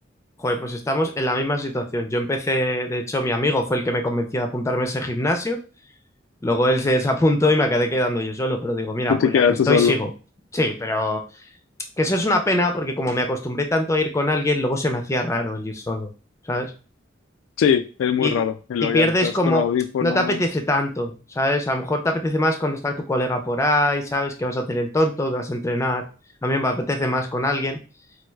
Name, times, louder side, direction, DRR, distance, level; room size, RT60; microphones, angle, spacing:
voice 1, 0.4-5.6 6.4-10.1 10.5-11.2 12.0-16.1 16.5-16.7 18.2-18.4 18.8-19.7 20.0-26.1 26.4-27.8, left 1 dB, 15° left, 5 dB, 0.4 m, -23 dB
voice 2, 9.1-9.9 17.6-20.4, left 7 dB, 85° left, 10 dB, 0.3 m, -21 dB
4.4 x 2.3 x 2.3 m, 0.35 s
head